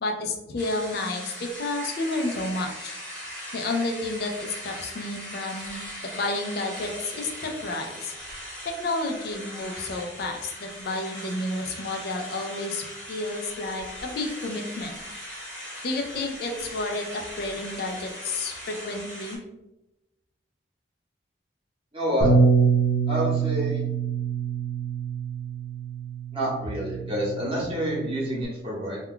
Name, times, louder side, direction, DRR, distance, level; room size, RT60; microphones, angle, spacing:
voice 1, 0.0-3.0 3.5-8.1 8.6-15.0 15.8-19.4, left 2 dB, 55° left, 2 dB, 0.4 m, -31 dB
sound 1, 0.6-19.4, equal, 5° left, 0.9 m, -39 dB
voice 2, 21.9-22.3 23.1-23.8 26.3-29.0, equal, 30° right, -5 dB, 0.9 m, -28 dB
Bass guitar, 22.2-28.4, right 5 dB, 65° right, 0.7 m, -25 dB
2.3 x 2.2 x 3.6 m, 0.97 s
head